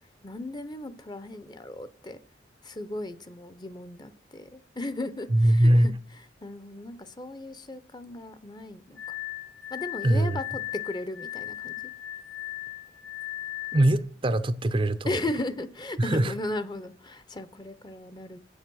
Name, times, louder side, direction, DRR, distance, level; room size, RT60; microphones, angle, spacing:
voice 1, 0.2-2.2 2.6-5.9 6.4-9.0 9.7-11.9 15.1-18.4, left 2 dB, 25° left, 0.6 m, -36 dB
voice 2, 5.3-5.9 10.0-10.4 13.7-15.2 16.0-16.3, right 1 dB, 30° right, 0.5 m, -22 dB
Glass, 9.0-14.0, left 16 dB, 90° left, 3.5 m, -37 dB
8.5 x 7.2 x 6.2 m
head